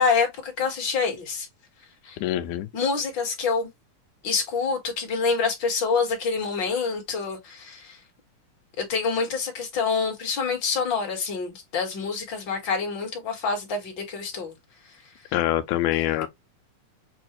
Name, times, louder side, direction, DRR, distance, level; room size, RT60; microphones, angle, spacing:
voice 1, 0.0-1.5 2.0-2.2 2.7-3.7 4.2-8.0 8.8-14.5, left 5 dB, 45° left, 1.8 m, -26 dB
voice 2, 2.2-2.7 15.3-16.3, left 13 dB, 80° left, 2.1 m, -24 dB
6.7 x 2.5 x 3.0 m
omnidirectional pair, 3.8 m